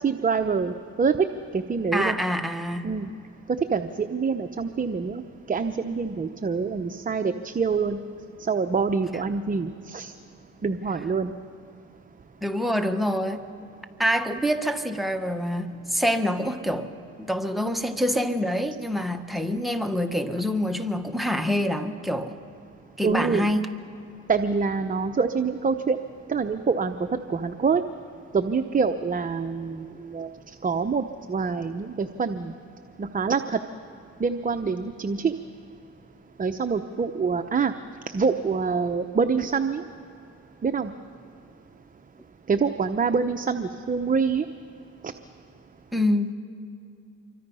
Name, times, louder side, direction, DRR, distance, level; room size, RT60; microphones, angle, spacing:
voice 1, 0.0-1.3 1.5-2.2 2.8-3.1 3.7-5.2 5.5-8.0 8.4-10.1 10.6-11.3 23.0-23.5 24.3-26.0 26.3-27.0 27.3-27.8 28.3-30.3 30.6-32.5 33.0-33.6 34.2-35.3 36.4-37.7 38.1-39.8 40.6-40.9 42.5-44.4, right 5 dB, 25° right, 7 dB, 0.8 m, -25 dB
voice 2, 1.9-2.9 12.4-13.4 14.0-16.9 17.2-22.3 23.0-23.7 45.9-46.3, equal, ahead, 9 dB, 1.3 m, -26 dB
26.0 x 24.0 x 5.6 m, 2.7 s
cardioid pair, 90°, 30 cm